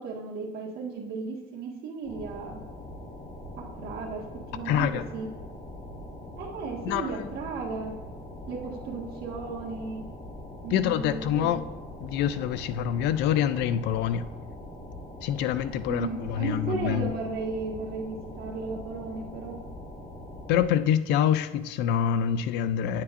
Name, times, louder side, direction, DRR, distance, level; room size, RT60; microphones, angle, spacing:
voice 1, 0.0-2.6 3.6-4.2 4.5-5.3 6.4-7.9 8.5-10.0 10.6-11.5 15.9-19.5, right 4 dB, 65° right, 1.6 m, -35 dB
sound 1, 2.0-20.6, left 1 dB, 30° left, 2.2 m, -42 dB
voice 2, 4.7-5.0 6.8-7.3 10.7-11.6 12.0-14.3 15.2-17.2 20.5-23.0, left 10 dB, 90° left, 0.4 m, -26 dB
9.5 x 7.3 x 2.5 m
cardioid pair, 110°, 17 cm